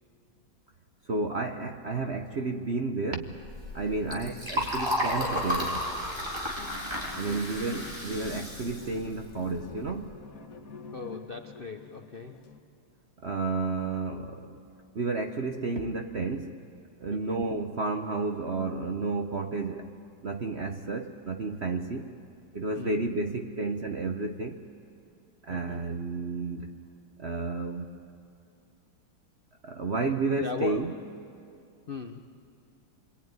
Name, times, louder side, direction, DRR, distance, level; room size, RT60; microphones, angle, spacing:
voice 1, 1.1-3.4 3.7-5.8 7.1-10.1 13.2-14.6 14.9-16.6 17.0-19.9 20.2-22.1 22.5-24.6 25.4-26.7 27.2-27.9 29.6-30.9, right 3 dB, 50° right, 5 dB, 0.7 m, -31 dB
Liquid, 3.3-10.0, equal, 10° right, 4.0 m, -33 dB
voice 2, 4.1-4.4 7.3-7.4 7.8-7.9 10.9-12.4 17.1-17.4 22.7-23.0 23.3-23.4 25.5-25.8 30.4-30.9 31.9-32.2, left 4 dB, 75° left, 6 dB, 0.5 m, -39 dB
sound 1, 6.5-12.6, left 4 dB, 45° left, 1.5 m, -47 dB
27.5 x 22.5 x 9.5 m, 2.5 s
omnidirectional pair, 2.3 m